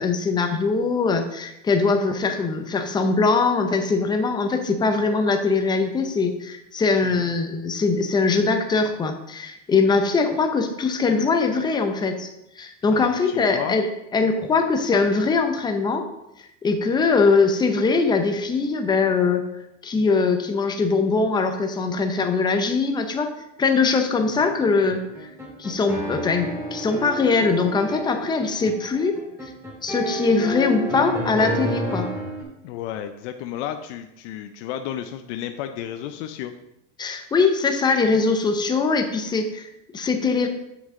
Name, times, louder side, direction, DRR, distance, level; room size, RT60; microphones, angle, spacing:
voice 1, 0.0-12.3 12.6-16.1 16.4-19.4 19.8-23.3 23.6-25.3 25.6-29.5 29.8-32.1 37.0-40.5, left 4 dB, 10° left, 5 dB, 0.6 m, -22 dB
voice 2, 12.9-13.8 32.6-36.5, left 10 dB, 65° left, 8 dB, 0.6 m, -32 dB
sound 1, 24.2-32.4, right 1 dB, 10° right, 1.9 m, -31 dB
7.9 x 6.3 x 3.7 m, 0.84 s
supercardioid pair, 150°, 37 cm